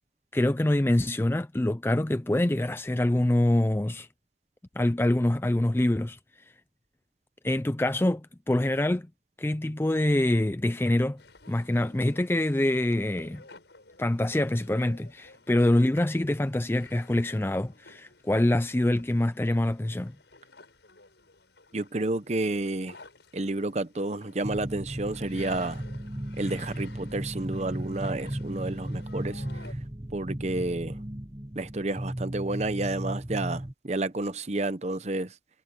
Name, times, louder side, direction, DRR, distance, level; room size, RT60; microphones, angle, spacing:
voice 1, 0.3-4.1 4.8-6.2 7.4-9.1 9.4-11.2 11.5-13.4 14.0-20.2, left 1 dB, 15° left, 0.4 m, -25 dB
sound 1, 11.2-29.7, left 3 dB, 75° left, 5.4 m, -53 dB
voice 2, 21.7-23.0 23.3-25.8 26.4-29.7 30.1-31.0 31.6-35.3, right 2 dB, 40° right, 0.8 m, -30 dB
horror ambience deep, 24.4-33.7, right 1 dB, 20° right, 1.1 m, -36 dB
head